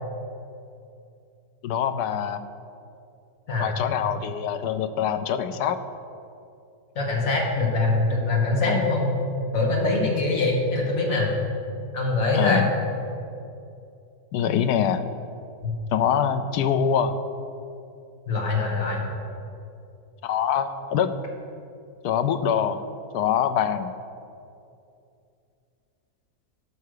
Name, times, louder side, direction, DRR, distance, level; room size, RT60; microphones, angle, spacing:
voice 1, 1.6-2.4 3.6-5.8 8.7-8.8 12.3-12.6 14.3-15.0 15.9-17.2 20.2-21.1 22.0-22.8 23.1-23.9, left 8 dB, 85° left, 10 dB, 1.2 m, -24 dB
voice 2, 7.0-9.1 9.5-11.3 11.9-12.7 15.6-15.7 18.3-19.1, left 3 dB, 60° left, -1 dB, 2.1 m, -23 dB
13.5 x 5.7 x 6.5 m, 2.6 s
omnidirectional pair, 1.7 m